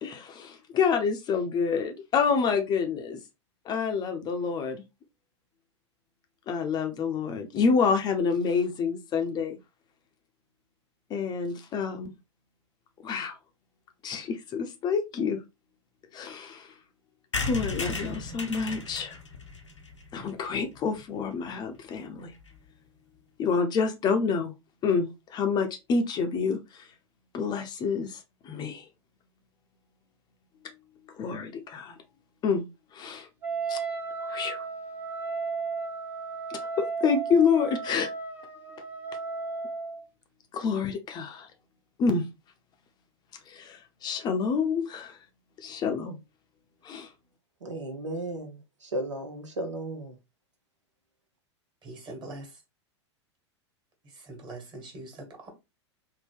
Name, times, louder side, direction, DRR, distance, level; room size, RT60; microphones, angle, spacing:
voice 1, 0.0-3.2 3.7-4.8 6.5-9.6 11.1-12.1 13.0-13.4 14.0-15.4 16.1-16.7 17.4-19.2 20.1-22.3 23.4-24.5 24.8-26.8 27.3-28.8 31.2-32.0 32.4-32.6 32.9-33.3 33.7-33.8 34.3-34.6 36.5-38.1 40.5-41.5 42.0-42.2 43.5-45.2 45.6-46.1 46.8-47.1, left 5 dB, 30° left, 0.5 m, -28 dB
sound 1, 17.3-21.0 21.4-21.5 21.7-21.8 22.0-22.1 22.3-22.6, left 3 dB, 85° left, 0.7 m, -35 dB
Wind instrument woodwind instrument, 33.4-40.0, right 4 dB, 10° right, 0.8 m, -34 dB
voice 2, 47.6-50.1, right 1 dB, 80° right, 0.8 m, -35 dB
voice 3, 51.8-52.6 54.0-55.5, right 2 dB, 30° right, 1.5 m, -43 dB
3.6 x 2.1 x 3.4 m
figure-of-eight pair, 90°, 15 cm